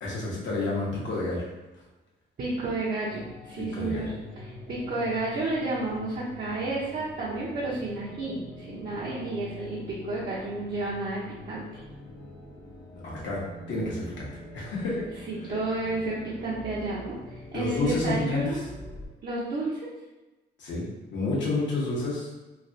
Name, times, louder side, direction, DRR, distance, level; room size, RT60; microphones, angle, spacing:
voice 1, 0.0-1.5 3.7-4.1 13.0-13.4 13.7-15.0 15.4-15.5 17.5-18.6 20.6-22.3, left 2 dB, 65° left, -5 dB, 1.1 m, -30 dB
voice 2, 2.4-11.2 11.5-11.8 15.3-18.6 19.2-19.8, right 2 dB, 45° right, -7 dB, 0.7 m, -31 dB
sound 1, 3.1-19.1, left 1 dB, 20° left, 0.8 m, -44 dB
3.2 x 2.3 x 2.6 m, 1.1 s
cardioid pair, 90°, 20 cm